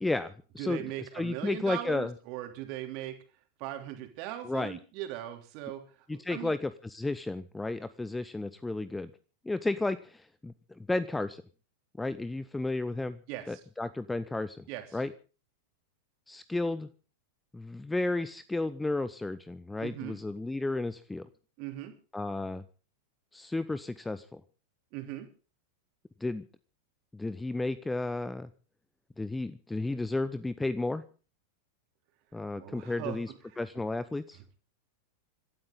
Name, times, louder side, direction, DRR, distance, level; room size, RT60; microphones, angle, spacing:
voice 1, 0.0-2.1 4.4-4.8 6.1-9.1 9.4-11.4 12.0-13.2 13.5-14.6 14.9-15.1 16.3-16.9 17.5-21.3 22.1-22.6 23.3-24.4 26.2-26.4 27.1-28.5 29.2-31.0 32.3-34.4, left 2 dB, 5° left, 15 dB, 0.8 m, -33 dB
voice 2, 0.6-3.2 3.6-5.8 6.1-6.5 13.3-13.6 14.7-14.8 19.8-20.2 21.6-21.9 24.9-25.3 32.6-33.2, right 13 dB, 45° right, 5 dB, 3.2 m, -39 dB
26.0 x 13.0 x 3.9 m, 0.38 s
figure-of-eight pair, 90°, 0 cm